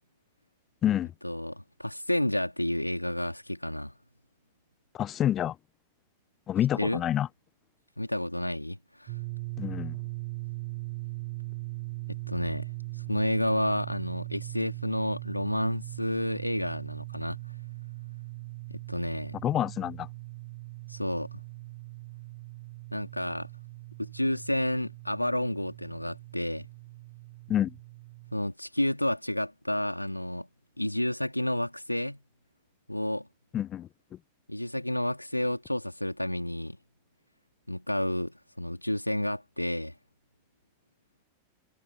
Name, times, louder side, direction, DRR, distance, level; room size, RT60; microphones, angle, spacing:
voice 1, 1.2-3.9 6.8-7.0 8.0-9.2 12.1-17.4 18.7-19.4 20.9-21.4 22.9-23.5 24.0-26.6 28.3-30.5 30.8-32.2 32.9-33.3 34.5-36.8 37.7-39.9, left 1 dB, 85° left, 3.3 m, -30 dB
voice 2, 4.9-5.6 6.5-7.3 9.6-10.0 19.4-20.1 27.5-27.7 33.5-33.9, left 11 dB, 30° left, 0.6 m, -27 dB
sound 1, 9.1-28.4, right 23 dB, 50° right, 3.1 m, -40 dB
figure-of-eight pair, 90°, 0 cm